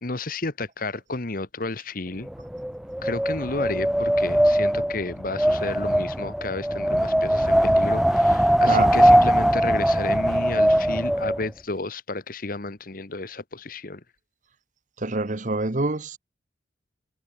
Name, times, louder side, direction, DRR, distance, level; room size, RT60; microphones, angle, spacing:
voice 1, 0.0-2.3 3.0-14.0, left 3 dB, 50° left, 1.4 m, -32 dB
Wind, 2.3-11.5, equal, ahead, 0.3 m, -21 dB
voice 2, 8.6-9.0 15.0-16.2, right 2 dB, 40° right, 1.0 m, -26 dB
head